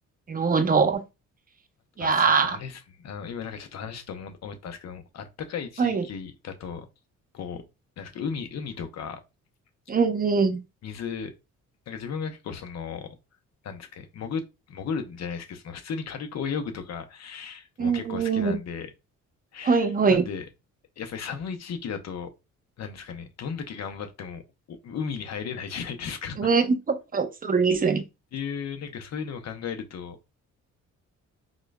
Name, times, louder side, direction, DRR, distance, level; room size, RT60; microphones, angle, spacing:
voice 1, 0.3-1.0 2.0-2.6 5.8-6.0 9.9-10.6 17.8-18.6 19.6-20.2 26.4-28.0, right 5 dB, 30° right, 0.7 m, -22 dB
voice 2, 2.0-6.9 7.3-7.6 8.0-9.2 10.8-11.3 11.9-13.1 13.6-18.9 19.5-20.5 21.0-22.3 22.8-24.4 24.7-26.6 28.3-30.2, left 6 dB, 60° left, 0.8 m, -35 dB
3.8 x 3.0 x 2.3 m
cardioid pair, 90°, 30 cm